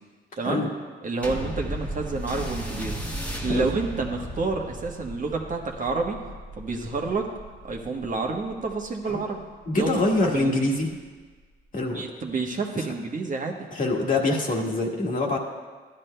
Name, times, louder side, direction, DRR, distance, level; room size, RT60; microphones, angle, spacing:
voice 1, 0.4-0.7 1.0-3.0 3.4-6.2 6.6-7.3 7.6-9.4 9.7-10.7 11.8-13.7, right 3 dB, 40° right, 1 dB, 1.2 m, -29 dB
sound 1, 1.2-10.0 10.8-10.9, equal, 5° left, 1.3 m, -36 dB
voice 2, 9.7-10.9 11.7-12.0 12.7-12.9 13.7-15.4, left 2 dB, 40° left, 0 dB, 1.6 m, -24 dB
13.5 x 11.0 x 2.2 m, 1.4 s
cardioid pair, 90°, 20 cm